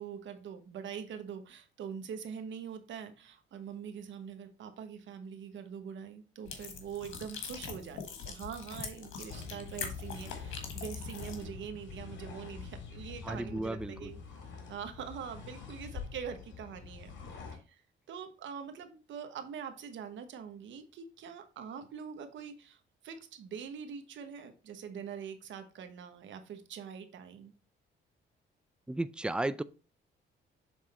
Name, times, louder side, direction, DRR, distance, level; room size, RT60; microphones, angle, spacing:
voice 1, 0.0-14.2 14.7-17.1 17.5-17.8 18.1-27.5, right 7 dB, 70° right, 1.1 m, -44 dB
sound 1, 6.4-11.5, left 6 dB, 80° left, 1.5 m, -43 dB
sound 2, 9.3-17.6, left 5 dB, 65° left, 2.1 m, -45 dB
voice 2, 13.2-14.1 28.9-29.6, right 2 dB, 5° right, 0.3 m, -34 dB
7.1 x 3.6 x 4.2 m
cardioid pair, 90°, 20 cm